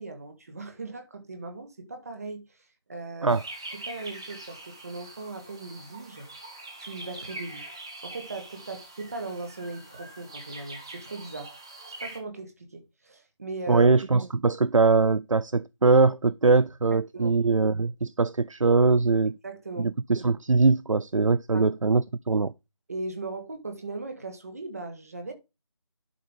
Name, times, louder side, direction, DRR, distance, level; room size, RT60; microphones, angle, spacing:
voice 1, 0.0-2.6 2.9-3.3 3.7-6.3 6.8-7.7 8.0-11.5 12.0-13.8 16.9-17.4 19.4-19.9 21.5-21.7 22.9-25.3, right 3 dB, 30° right, 1.5 m, -38 dB
sound 1, 3.3-12.2, right 2 dB, 10° right, 0.7 m, -43 dB
voice 2, 13.7-19.4 19.8-22.5, right 3 dB, 85° right, 0.4 m, -22 dB
11.0 x 5.8 x 3.6 m
figure-of-eight pair, 160°, 16 cm